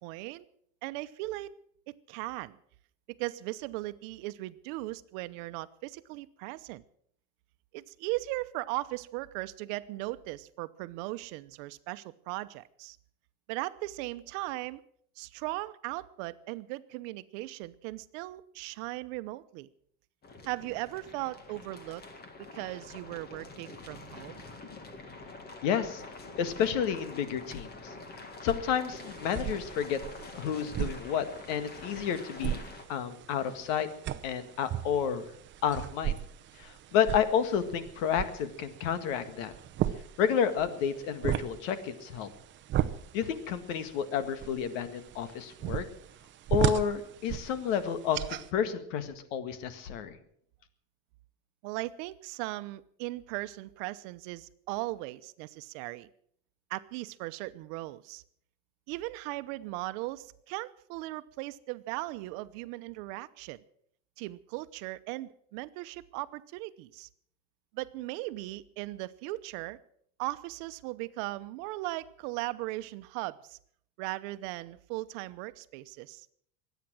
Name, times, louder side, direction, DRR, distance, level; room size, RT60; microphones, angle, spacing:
voice 1, 0.0-0.5 0.8-1.5 1.9-2.6 3.1-6.8 7.7-13.0 13.5-14.8 15.2-19.7 20.4-22.0 22.4-24.4 51.6-56.1 56.7-58.2 58.9-63.6 64.2-67.1 67.7-69.8 70.2-73.6 74.0-76.3, right 19 dB, 70° right, 14 dB, 0.9 m, -38 dB
sound 1, 20.2-32.8, left 3 dB, 25° left, 2.0 m, -46 dB
voice 2, 25.6-26.0 26.4-27.9 28.4-30.0 30.3-32.6 32.9-33.9 34.2-35.2 35.6-36.2 36.6-39.5 40.2-42.3 43.1-45.8 46.5-50.2, left 8 dB, 80° left, 11 dB, 1.9 m, -30 dB
sound 2, 29.0-48.5, right 12 dB, 30° right, 0.7 m, -36 dB
23.5 x 9.3 x 6.2 m, 0.65 s
cardioid pair, 150°, 38 cm